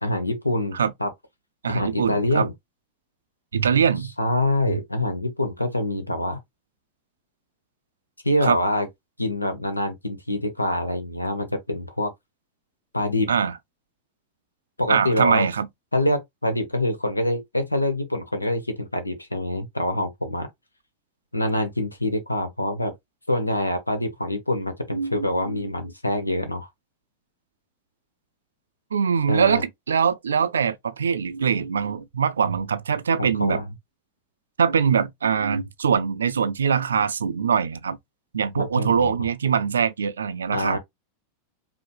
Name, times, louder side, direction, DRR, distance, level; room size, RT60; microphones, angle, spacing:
voice 1, 0.0-1.1 1.7-2.5 4.2-6.4 8.2-8.9 9.2-12.1 12.9-13.3 14.8-15.5 15.9-20.5 21.3-22.9 23.3-26.7 29.3-29.6 33.2-33.7 38.6-39.1 40.5-40.8, left 1 dB, 85° left, 0.9 m, -25 dB
voice 2, 1.6-2.5 3.5-4.1 4.7-4.8 8.4-8.6 13.3-13.5 14.9-15.7 24.9-25.6 28.9-33.6 34.6-38.0 38.3-40.8, right 6 dB, 70° right, 0.4 m, -23 dB
5.1 x 2.8 x 2.2 m
figure-of-eight pair, 90°, 0 cm